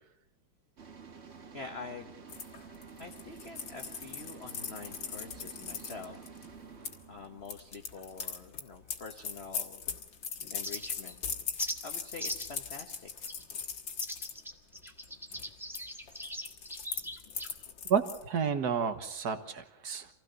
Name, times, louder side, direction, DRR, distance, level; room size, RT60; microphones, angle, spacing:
sound 1, 0.8-8.7, right 6 dB, 35° right, 1.5 m, -51 dB
voice 1, 1.2-2.1 3.0-6.2 7.1-9.9 10.5-11.2 11.8-13.3, left 4 dB, 35° left, 4 dB, 1.2 m, -46 dB
sound 2, 2.3-6.9 7.4-14.3 14.8-15.0 15.3-18.2, left 6 dB, 70° left, 2.3 m, -40 dB
sound 3, 10.6-11.1 11.6-11.8 12.2-12.6 13.3-13.4 14.0-17.5, equal, ahead, 1.5 m, -40 dB
voice 2, 17.8-20.1, right 6 dB, 55° right, 9 dB, 1.8 m, -31 dB
26.0 x 16.5 x 6.8 m, 0.81 s
omnidirectional pair, 2.2 m